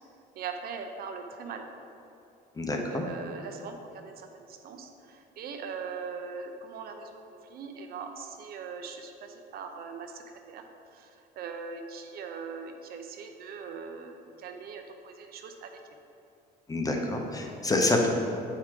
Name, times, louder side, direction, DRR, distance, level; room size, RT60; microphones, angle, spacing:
voice 1, 0.3-1.7 2.7-15.8, right 5 dB, 65° right, 5 dB, 0.7 m, -41 dB
voice 2, 2.6-3.0 16.7-18.1, left 2 dB, 20° left, 2 dB, 0.8 m, -27 dB
8.8 x 4.7 x 3.7 m, 2.7 s
cardioid pair, 110°, 17 cm